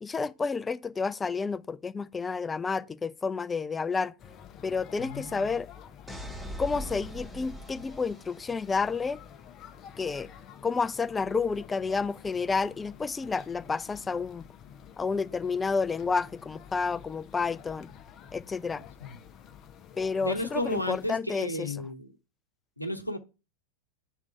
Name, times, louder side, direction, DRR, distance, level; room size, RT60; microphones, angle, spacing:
voice 1, 0.0-4.1 4.6-5.7 6.6-9.2 10.0-10.3 10.6-14.4 15.0-17.9 18.3-18.8 20.0-21.7, left 4 dB, 15° left, 0.3 m, -30 dB
sound 1, 4.2-21.1, left 8 dB, 30° left, 0.7 m, -50 dB
voice 2, 5.0-5.6 18.8-19.2 20.2-22.1 22.8-23.2, left 1 dB, 90° left, 0.8 m, -34 dB
sound 2, 6.1-8.9, equal, 5° right, 0.8 m, -41 dB
6.3 x 3.7 x 5.5 m
figure-of-eight pair, 90°, 0 cm